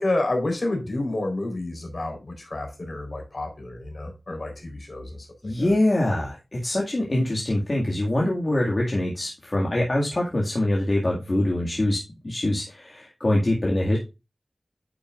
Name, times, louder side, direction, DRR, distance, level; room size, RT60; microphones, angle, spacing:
voice 1, 0.0-5.3 5.6-5.7, left 2 dB, 60° left, 3 dB, 3.9 m, -29 dB
voice 2, 5.4-12.0 12.2-14.0, left 1 dB, 45° left, -3 dB, 2.1 m, -24 dB
9.8 x 7.0 x 2.5 m, 0.26 s
wide cardioid pair, 75°, 0 cm